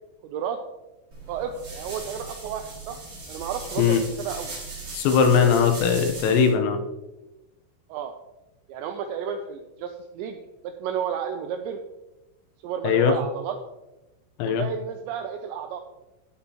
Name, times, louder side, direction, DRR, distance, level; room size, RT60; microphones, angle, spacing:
voice 1, 0.2-0.6 1.3-3.0 3.3-4.5 7.9-8.1 8.7-11.8 12.6-13.6 14.4-15.8, right 7 dB, 85° right, 6 dB, 2.5 m, -32 dB
sound 1, 1.1-6.5, right 3 dB, 30° right, 3.7 m, -38 dB
voice 2, 4.9-6.8 12.8-13.2 14.4-14.6, left 6 dB, 85° left, 5 dB, 3.7 m, -20 dB
17.0 x 6.6 x 2.9 m, 1.0 s
omnidirectional pair, 5.7 m